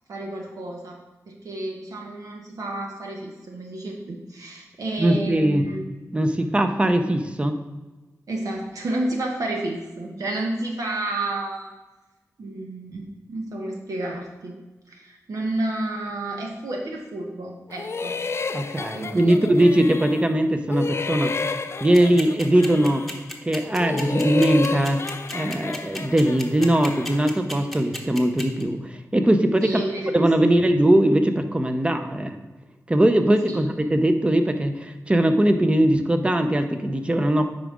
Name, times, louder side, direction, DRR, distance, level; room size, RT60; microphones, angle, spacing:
voice 1, 0.1-1.0 1.3-5.9 8.3-11.7 12.4-13.0 13.3-14.6 14.9-18.1 18.9-19.5 29.6-30.6 33.5-33.6, right 2 dB, 75° right, 0 dB, 1.0 m, -31 dB
voice 2, 5.0-5.7 6.1-7.6 18.5-21.3 21.8-23.0 23.4-29.8 30.1-32.4 32.9-37.4, right 1 dB, 20° right, 7 dB, 0.7 m, -20 dB
sound 1, 17.7-20.4 20.7-23.2 23.7-27.4, left 4 dB, 45° left, 0.4 m, -31 dB
sound 2, 21.9-28.6, left 1 dB, ahead, 1.0 m, -34 dB
8.9 x 5.0 x 3.6 m, 1.2 s
wide cardioid pair, 90°, 6 cm